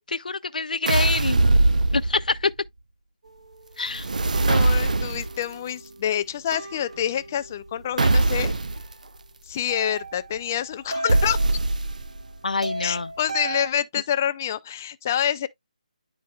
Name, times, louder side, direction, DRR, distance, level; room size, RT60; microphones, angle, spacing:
voice 1, 0.0-1.4 1.9-2.5 3.8-4.1 12.4-13.1, left 4 dB, 85° left, 0.4 m, -26 dB
sound 1, 0.9-2.5 3.9-5.4 8.0-8.8 11.1-12.2, right 2 dB, 70° right, 0.7 m, -21 dB
sound 2, 3.2-13.7, right 3 dB, 55° right, 1.6 m, -38 dB
voice 2, 4.4-8.5 9.5-11.4 12.8-15.5, left 10 dB, 20° left, 0.4 m, -27 dB
10.5 x 4.6 x 2.3 m
hypercardioid pair, 170°, 4 cm